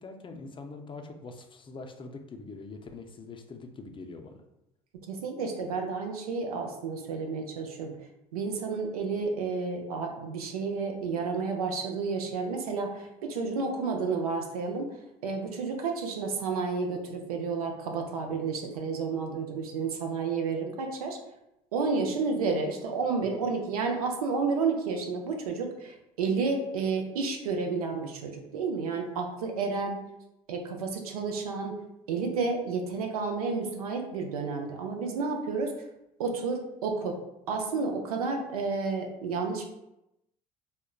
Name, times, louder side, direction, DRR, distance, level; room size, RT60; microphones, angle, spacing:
voice 1, 0.0-4.4, left 3 dB, 25° left, 5 dB, 0.4 m, -43 dB
voice 2, 5.1-7.9 8.3-21.2 21.7-30.0 30.5-31.7 32.1-35.7 36.2-37.2 37.5-39.6, right 4 dB, 90° right, 3 dB, 0.4 m, -31 dB
3.6 x 2.1 x 2.2 m, 0.88 s
hypercardioid pair, 65°, 18 cm